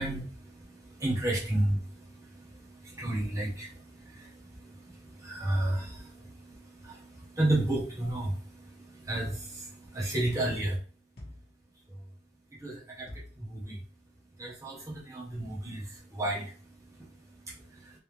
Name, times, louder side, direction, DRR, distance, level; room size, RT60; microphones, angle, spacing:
voice 1, 0.0-2.0 2.4-2.5 2.7-10.8 12.6-13.1 13.4-13.8 14.4-15.8 16.1-16.5, right 1 dB, 15° right, -5 dB, 1.1 m, -32 dB
sound 1, 9.2-9.6 11.2-11.6 13.1-13.4, left 1 dB, 55° left, 1.1 m, -46 dB
3.5 x 3.3 x 2.9 m, 0.42 s
head